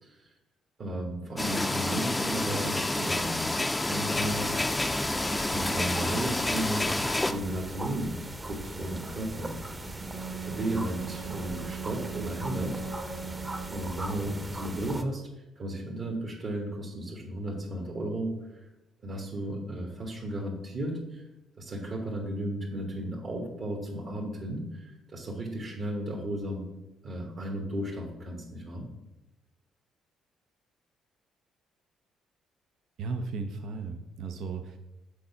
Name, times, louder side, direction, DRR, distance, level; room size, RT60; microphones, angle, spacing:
voice 1, 0.8-4.9 5.5-8.2 8.4-9.5 10.4-13.3 13.7-15.2 15.5-18.4 19.0-21.2 21.6-26.6 27.0-28.9, right 1 dB, 55° right, -1 dB, 1.4 m, -34 dB
sound 1, 1.4-7.3, left 2 dB, 15° left, 0.5 m, -29 dB
sound 2, 4.1-15.0, right 2 dB, 20° right, 0.8 m, -39 dB
Wind instrument woodwind instrument, 10.1-14.2, right 6 dB, 90° right, 2.0 m, -39 dB
voice 2, 33.0-34.8, right 4 dB, 70° right, 6 dB, 0.6 m, -35 dB
6.5 x 3.9 x 5.6 m, 0.97 s
supercardioid pair, 65°, 0 cm